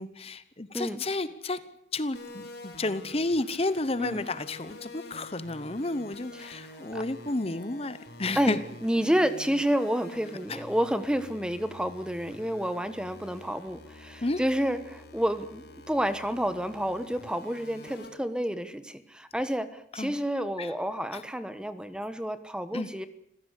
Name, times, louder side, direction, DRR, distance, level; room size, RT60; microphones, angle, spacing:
voice 1, 0.0-1.6 1.9-8.6 10.5-10.6 14.2-14.4 19.9-20.2 20.6-20.7 21.1-21.2 22.7-22.9, left 2 dB, 30° left, 13 dB, 0.9 m, -31 dB
sound 1, 2.1-18.1, left 1 dB, 55° left, 4.6 m, -47 dB
voice 2, 6.4-7.0 8.4-23.1, equal, 5° right, 11 dB, 1.1 m, -30 dB
26.5 x 16.0 x 8.3 m, 0.76 s
head